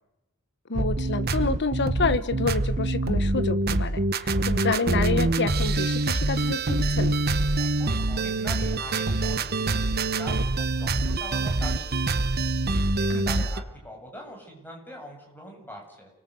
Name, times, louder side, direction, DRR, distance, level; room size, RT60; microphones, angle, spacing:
voice 1, 0.7-7.1 13.1-13.2, left 3 dB, 50° left, 12 dB, 1.4 m, -28 dB
sound 1, 0.7-13.6, right 2 dB, 45° right, 1.2 m, -25 dB
voice 2, 7.6-12.5 13.0-16.1, equal, 10° left, 0 dB, 7.8 m, -43 dB
29.0 x 22.0 x 8.0 m, 0.93 s
head